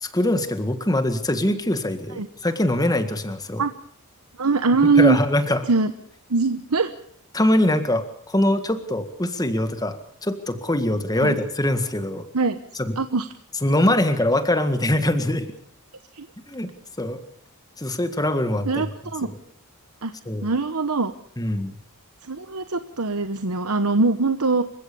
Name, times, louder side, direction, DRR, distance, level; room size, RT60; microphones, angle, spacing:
voice 1, 0.0-3.6 5.0-5.6 7.3-12.3 12.8-12.9 13.6-15.5 16.5-16.7 17.0-17.2 17.8-18.9 19.2-19.3 20.3-20.5 21.4-21.7, left 1 dB, 15° left, 9 dB, 1.8 m, -23 dB
voice 2, 4.4-5.2 5.7-5.9 6.3-6.9 11.2-11.4 12.3-12.6 13.0-13.3 16.1-16.3 18.7-19.3 20.0-20.1 20.4-21.1 22.2-24.6, right 3 dB, 80° right, 9 dB, 1.1 m, -22 dB
28.0 x 16.0 x 7.0 m, 0.64 s
head